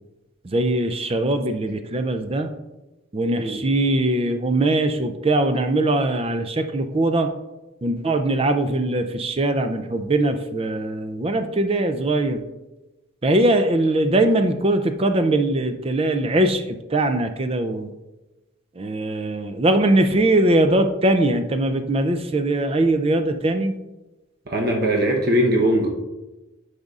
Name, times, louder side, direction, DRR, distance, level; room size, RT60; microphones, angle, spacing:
voice 1, 0.4-2.5 3.1-7.3 7.8-12.4 13.2-17.9 18.8-23.7, right 1 dB, 30° right, 8 dB, 0.4 m, -21 dB
voice 2, 24.5-25.9, equal, 50° right, 0 dB, 0.9 m, -20 dB
10.5 x 5.0 x 2.4 m, 1.1 s
head